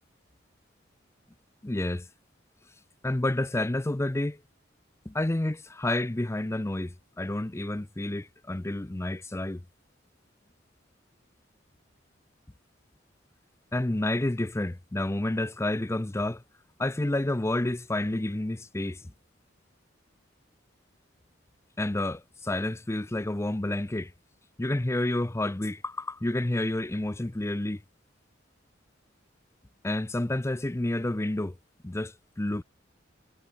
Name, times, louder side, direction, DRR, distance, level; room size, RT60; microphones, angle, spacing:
voice 1, 1.6-2.1 3.0-4.4 5.1-9.6 13.7-16.4 16.8-19.0 21.8-24.1 24.6-27.8 29.8-31.5 31.8-32.6, left 1 dB, 15° left, 0.5 m, -29 dB
head